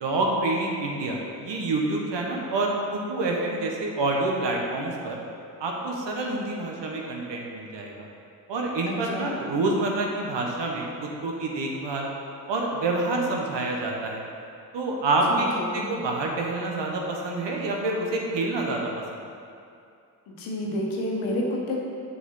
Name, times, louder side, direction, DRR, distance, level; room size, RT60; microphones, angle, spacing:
voice 1, 0.0-5.2 5.6-8.1 8.5-12.1 12.5-14.2 14.7-15.5 15.7-19.3, right 2 dB, 65° right, -1 dB, 1.4 m, -27 dB
voice 2, 8.9-9.4 15.3-15.9 20.3-21.8, left 1 dB, 85° left, -2 dB, 1.2 m, -30 dB
8.1 x 5.4 x 3.9 m, 2.5 s
hypercardioid pair, 45°, 46 cm